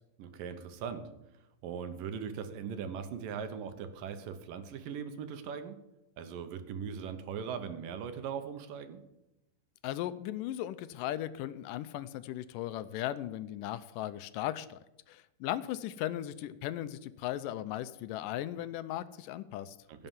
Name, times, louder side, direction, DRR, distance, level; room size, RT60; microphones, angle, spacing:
voice 1, 0.2-1.1 1.6-5.8 6.2-9.0 19.9-20.1, right 7 dB, 80° right, 9 dB, 2.8 m, -40 dB
voice 2, 9.8-14.8 15.1-19.8, left 13 dB, 80° left, 14 dB, 2.2 m, -37 dB
16.5 x 6.8 x 7.4 m, 0.91 s
omnidirectional pair, 3.9 m